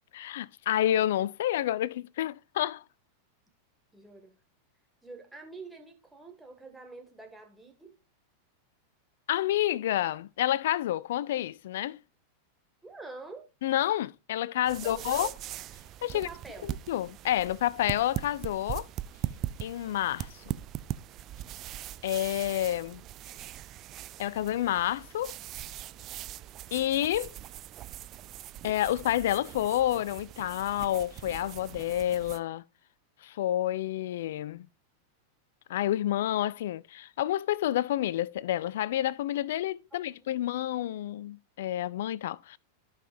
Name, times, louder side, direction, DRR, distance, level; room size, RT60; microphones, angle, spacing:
voice 1, 0.1-2.8 9.3-12.0 13.6-15.3 16.0-16.3 16.6-18.9 19.6-20.4 22.0-23.0 24.2-25.3 26.7-27.3 28.6-32.6 33.2-34.7 35.7-42.6, left 12 dB, 55° left, 0.3 m, -29 dB
voice 2, 3.9-4.3 5.0-7.9 12.8-13.4 14.7-15.3 16.1-16.7 39.9-40.3, right 3 dB, 5° right, 1.9 m, -46 dB
sound 1, 14.7-32.4, right 13 dB, 35° right, 0.4 m, -41 dB
15.0 x 5.6 x 2.6 m
figure-of-eight pair, 90°, 0 cm